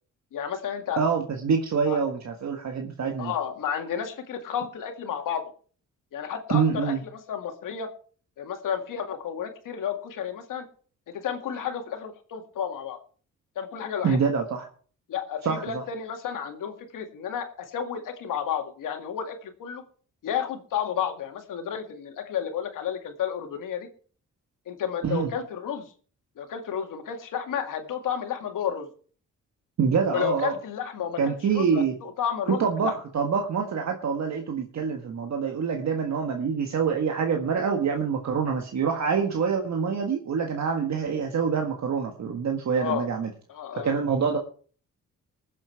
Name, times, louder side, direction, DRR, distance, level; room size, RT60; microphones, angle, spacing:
voice 1, 0.3-1.0 1.9-2.0 3.2-5.4 6.1-7.9 8.4-10.6 11.1-13.0 13.6-14.3 15.1-19.8 20.2-23.9 24.7-25.9 26.4-28.9 30.1-31.2 31.5-32.9 42.8-43.1 43.5-43.9, left 8 dB, 90° left, 6 dB, 2.1 m, -31 dB
voice 2, 1.0-3.3 6.5-7.0 14.0-14.7 15.4-15.8 25.0-25.3 29.8-30.5 31.2-31.9 32.5-43.3 43.7-44.4, right 6 dB, 60° right, 3 dB, 1.7 m, -26 dB
20.0 x 7.6 x 4.5 m, 0.43 s
cardioid pair, 100°, 31 cm